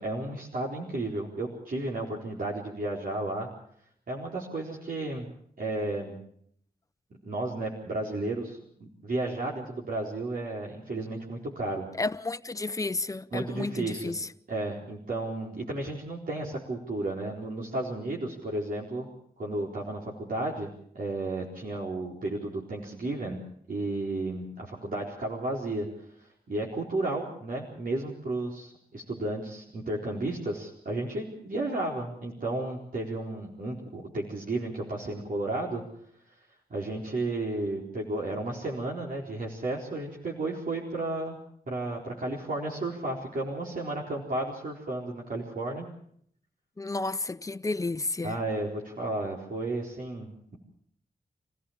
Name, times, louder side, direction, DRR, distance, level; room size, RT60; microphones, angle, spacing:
voice 1, 0.0-3.5 4.1-5.3 5.6-6.2 7.2-11.9 13.3-14.2 14.5-19.1 19.4-23.4 23.7-25.9 26.5-35.8 36.7-41.4 41.7-45.9 48.2-50.6, right 2 dB, 65° right, 4.3 m, -33 dB
voice 2, 12.0-14.3 46.8-48.4, left 3 dB, 20° left, 0.8 m, -32 dB
25.5 x 15.5 x 7.3 m
cardioid pair, 75°, 16 cm